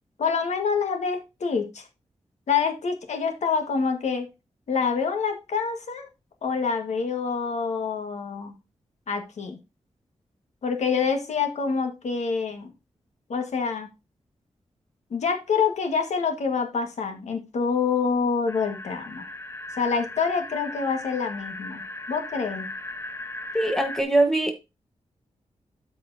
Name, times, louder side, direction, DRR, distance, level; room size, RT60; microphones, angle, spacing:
voice 1, 0.2-1.9 2.5-4.3 4.7-6.1 6.4-8.5 9.1-9.6 10.6-12.7 13.3-13.9 15.1-19.2 19.8-21.8 22.1-22.7, left 5 dB, 80° left, 5 dB, 1.7 m, -26 dB
sound 1, 18.5-24.0, left 1 dB, 20° left, 0.5 m, -37 dB
voice 2, 23.5-24.5, right 2 dB, 5° left, 4 dB, 1.4 m, -22 dB
12.5 x 4.8 x 2.8 m, 0.25 s
wide cardioid pair, 160°, 12 cm